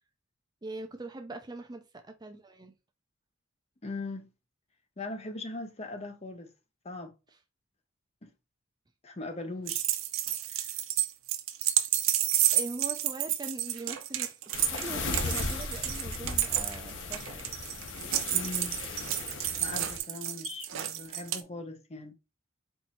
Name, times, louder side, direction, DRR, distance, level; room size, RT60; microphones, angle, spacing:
voice 1, 0.6-2.7 12.5-17.6, right 2 dB, 20° right, 0.5 m, -42 dB
voice 2, 3.8-4.3 5.0-6.5 6.8-7.1 8.2-8.3 9.0-9.9 10.5-10.7 18.3-18.8 19.5-22.1, left 2 dB, 30° left, 0.7 m, -40 dB
sound 1, 9.7-21.4, right 12 dB, 80° right, 0.6 m, -30 dB
sound 2, 14.5-20.0, left 3 dB, 65° left, 1.0 m, -37 dB
4.5 x 2.7 x 4.2 m
head